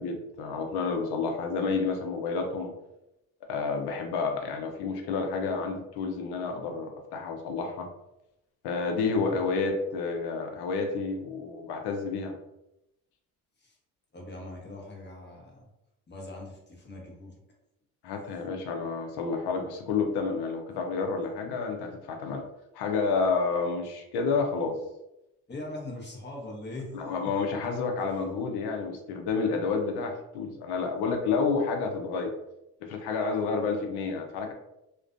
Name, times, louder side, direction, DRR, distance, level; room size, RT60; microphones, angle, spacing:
voice 1, 0.0-2.7 3.5-7.9 8.6-12.3 18.0-22.4 22.7-24.8 26.9-32.3 32.9-34.5, left 4 dB, 80° left, 4 dB, 0.6 m, -30 dB
voice 2, 14.1-15.7 16.1-17.4 25.5-27.3 28.1-28.3, left 2 dB, 25° left, -1 dB, 0.8 m, -41 dB
2.4 x 2.2 x 2.4 m, 0.88 s
cardioid pair, 85°, 39 cm